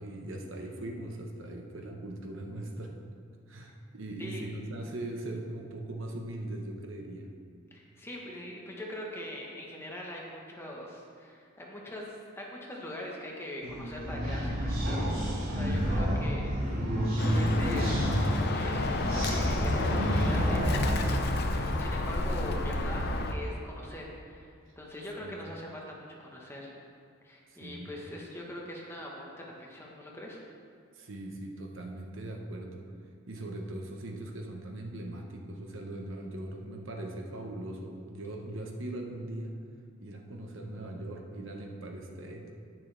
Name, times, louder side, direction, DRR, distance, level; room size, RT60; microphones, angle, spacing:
voice 1, 0.0-2.9 3.5-7.3 25.2-25.4 27.5-27.9 30.9-32.8 33.3-39.5 40.0-42.4, right 1 dB, 70° right, 2 dB, 1.1 m, -40 dB
voice 2, 7.7-26.7 27.2-30.4, left 1 dB, 10° left, -3 dB, 1.3 m, -42 dB
sound 1, 13.6-21.7, equal, 45° right, 2.0 m, -30 dB
Bird, 17.2-23.3, left 2 dB, 50° left, 0.7 m, -30 dB
10.5 x 9.8 x 3.4 m, 2.3 s
head